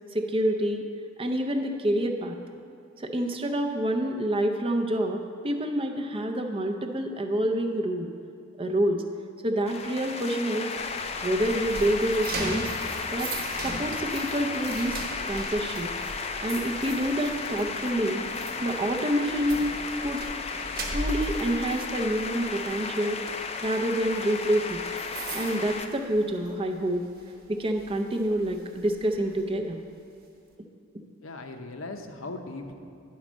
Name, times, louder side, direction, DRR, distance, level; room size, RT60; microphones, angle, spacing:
voice 1, 0.1-0.9 1.2-2.4 3.0-8.1 8.6-9.0 9.4-10.7 11.2-12.7 13.1-13.3 13.6-15.0 15.2-15.9 16.4-18.3 18.6-20.2 20.9-23.2 23.6-24.8 25.3-27.1 27.5-29.8 30.9-31.0, right 1 dB, 25° right, 3 dB, 0.5 m, -27 dB
sound 1, 9.7-25.9, left 4 dB, 30° left, 0.4 m, -34 dB
sound 2, 10.8-26.7 27.0-27.3 27.8-29.4, right 2 dB, 45° right, 1.0 m, -39 dB
voice 2, 31.2-32.7, left 2 dB, 70° left, 5 dB, 0.7 m, -38 dB
10.0 x 4.2 x 6.2 m, 2.5 s
head